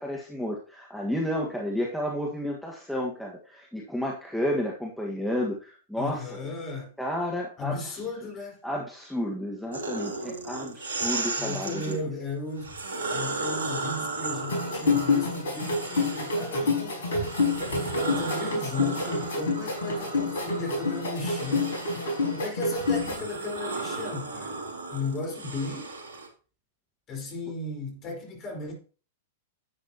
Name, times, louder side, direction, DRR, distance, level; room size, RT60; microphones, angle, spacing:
voice 1, 0.0-6.2 7.0-8.0 8.6-12.0, left 1 dB, ahead, 1.7 m, -31 dB
voice 2, 6.0-6.9 7.6-8.6 11.4-12.7 13.1-17.1 17.6-22.0 22.3-24.6 24.9-25.9 27.1-28.7, left 3 dB, 30° left, 4.8 m, -35 dB
sound 1, 9.7-12.0 12.6-16.6 17.1-26.3, right 3 dB, 70° right, 3.0 m, -35 dB
sound 2, 14.5-23.2, left 3 dB, 70° left, 4.7 m, -28 dB
11.0 x 8.7 x 3.0 m
figure-of-eight pair, 100°, 0 cm